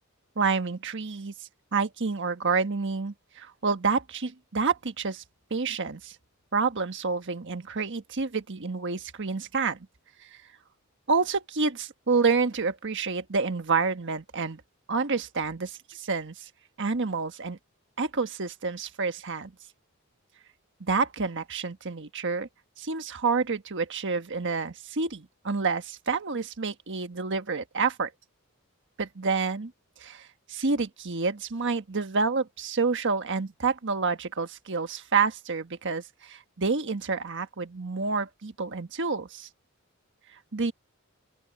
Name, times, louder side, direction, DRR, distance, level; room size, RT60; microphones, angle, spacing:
voice 1, 0.4-1.3 1.7-5.2 5.5-6.1 6.5-9.8 11.1-14.6 14.9-16.5 16.8-17.6 18.0-19.5 20.8-22.5 22.8-28.1 29.0-29.7 30.0-39.5 40.5-40.7, right 4 dB, 60° right, 1.4 m, -28 dB
open air
head